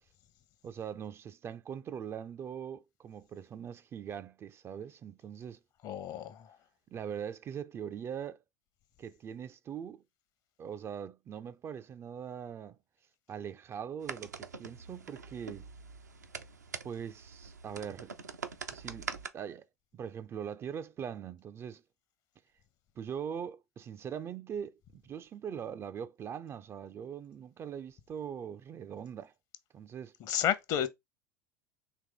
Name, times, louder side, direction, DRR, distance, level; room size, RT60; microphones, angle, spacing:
voice 1, 0.6-5.6 6.9-8.4 9.0-10.0 10.6-12.8 13.3-15.7 16.8-18.1 18.7-19.7 19.9-21.8 23.0-29.3 29.7-30.1, right 8 dB, 30° right, 0.3 m, -41 dB
voice 2, 5.8-6.5 30.2-30.9, left 10 dB, 45° left, 0.7 m, -31 dB
sound 1, 14.0-19.3, right 5 dB, 85° right, 0.5 m, -44 dB
4.5 x 3.0 x 3.8 m
figure-of-eight pair, 75°, 9 cm